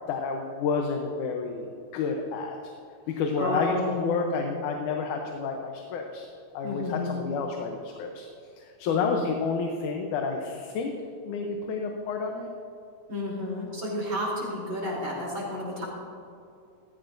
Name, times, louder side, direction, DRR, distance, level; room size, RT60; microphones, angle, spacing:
voice 1, 0.1-2.6 3.1-6.3 6.5-8.3 8.6-10.9 11.3-12.5, left 5 dB, 85° left, 2 dB, 2.4 m, -30 dB
voice 2, 3.4-4.3 6.6-7.2 8.8-9.4 13.1-15.8, left 1 dB, 40° right, -4 dB, 3.9 m, -31 dB
15.5 x 14.0 x 2.6 m, 2.5 s
omnidirectional pair, 3.4 m